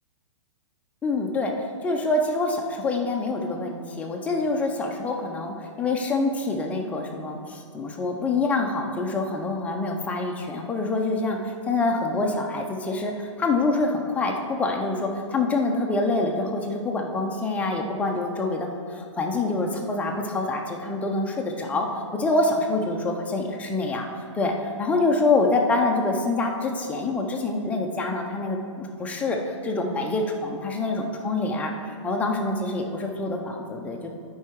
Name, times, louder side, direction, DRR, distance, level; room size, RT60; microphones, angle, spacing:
voice 1, 1.0-21.9 22.1-24.1 24.3-34.1, left 2 dB, 10° left, 1 dB, 0.6 m, -26 dB
11.0 x 4.7 x 4.6 m, 2.3 s
hypercardioid pair, 150°, 16 cm